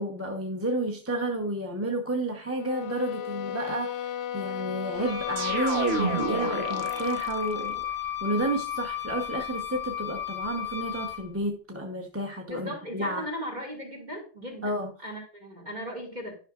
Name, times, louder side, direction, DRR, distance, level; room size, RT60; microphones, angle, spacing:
voice 1, 0.0-7.8 8.2-13.2 14.6-14.9, right 1 dB, 15° right, 1 dB, 1.0 m, -31 dB
sound 1, 2.5-7.3, left 10 dB, 85° left, 0.9 m, -35 dB
Wind instrument woodwind instrument, 4.9-11.3, left 12 dB, 25° left, 0.7 m, -33 dB
sound 2, 5.4-7.6, right 5 dB, 80° right, 1.1 m, -31 dB
voice 2, 12.5-16.4, equal, 45° right, 1 dB, 2.4 m, -37 dB
11.0 x 5.8 x 2.4 m, 0.38 s
omnidirectional pair, 1.0 m